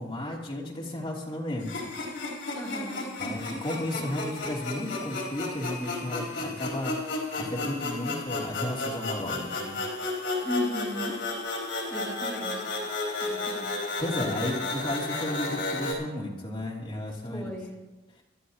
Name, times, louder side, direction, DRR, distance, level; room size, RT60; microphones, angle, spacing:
voice 1, 0.0-1.9 3.2-9.8 14.0-17.5, left 1 dB, 25° left, -4 dB, 2.9 m, -33 dB
sound 1, 1.6-15.9, left 2 dB, 70° left, 3.7 m, -33 dB
voice 2, 2.5-3.1 10.3-11.2 11.9-12.7 13.2-13.7 17.3-17.7, equal, 5° left, -6 dB, 3.0 m, -35 dB
25.5 x 11.5 x 2.9 m, 1.1 s
head